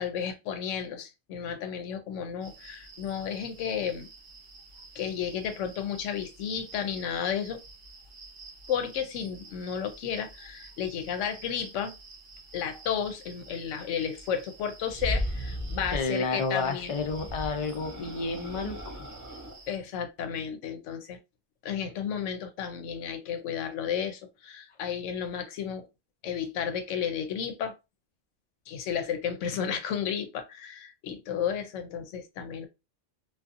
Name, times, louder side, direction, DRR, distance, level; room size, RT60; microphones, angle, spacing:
voice 1, 0.0-4.1 4.9-7.6 8.7-11.9 12.5-17.0 19.7-21.2 21.6-25.9 26.2-27.7 28.7-32.7, left 8 dB, 85° left, 0.9 m, -33 dB
sound 1, 2.4-19.8, right 3 dB, 55° right, 0.6 m, -50 dB
sound 2, 14.8-16.1 16.9-19.6, equal, 20° right, 0.7 m, -35 dB
voice 2, 15.9-18.9, left 4 dB, 55° left, 0.3 m, -30 dB
2.4 x 2.3 x 2.5 m
omnidirectional pair, 1.2 m